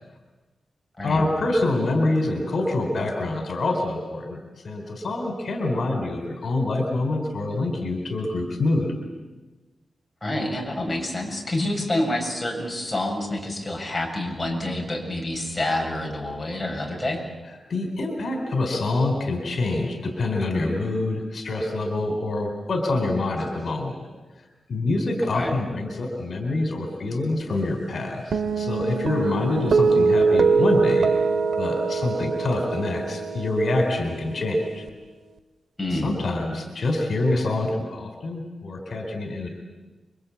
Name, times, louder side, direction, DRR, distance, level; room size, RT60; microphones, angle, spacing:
voice 1, 1.0-8.9 17.7-24.0 24.7-31.1 31.6-34.9 35.9-39.5, left 2 dB, 60° left, 4 dB, 3.9 m, -26 dB
voice 2, 10.2-17.2 25.3-25.6 35.8-36.1, left 1 dB, 15° left, 0 dB, 7.4 m, -27 dB
sound 1, 28.3-34.9, right 4 dB, 75° right, 2.0 m, -23 dB
29.0 x 24.0 x 8.6 m, 1.2 s
wide cardioid pair, 115°, 0 cm